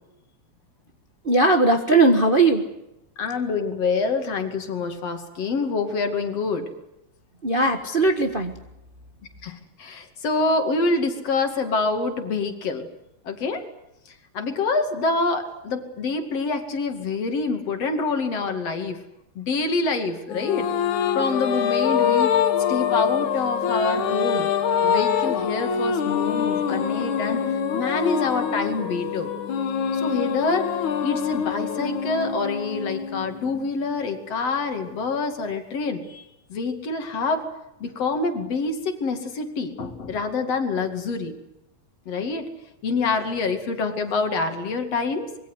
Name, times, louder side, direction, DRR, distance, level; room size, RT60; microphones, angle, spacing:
voice 1, 1.2-2.6 7.4-8.5, right 2 dB, 30° right, 5 dB, 1.1 m, -18 dB
voice 2, 3.2-6.7 9.4-12.9 13.2-13.6 14.3-19.0 19.4-20.7 21.1-22.4 22.7-24.5 24.8-27.4 27.7-29.3 29.9-30.7 31.0-36.2 36.5-37.5 37.8-41.3 42.1-42.5 42.8-45.3, left 3 dB, 60° left, 6 dB, 3.4 m, -26 dB
sound 1, 20.3-33.9, left 7 dB, 85° left, 3.0 m, -25 dB
25.5 x 22.5 x 8.1 m, 0.88 s
omnidirectional pair, 3.3 m